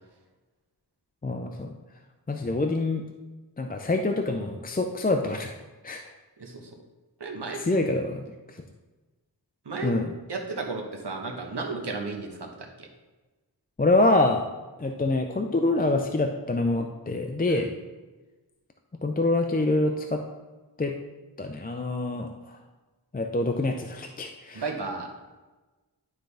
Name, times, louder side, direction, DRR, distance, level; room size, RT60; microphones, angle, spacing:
voice 1, 1.2-1.7 2.3-3.0 3.6-5.5 5.8-6.0 7.6-8.2 9.8-10.1 13.8-14.4 14.8-17.7 19.0-20.2 20.8-20.9 21.4-22.6 23.1-24.6, left 2 dB, 20° left, 4 dB, 0.5 m, -25 dB
voice 2, 6.4-6.7 7.2-7.6 9.6-9.9 10.3-12.9 17.5-17.7 24.5-25.1, right 4 dB, 70° right, 2 dB, 1.2 m, -33 dB
11.5 x 3.8 x 3.4 m, 1.2 s
wide cardioid pair, 50°, 42 cm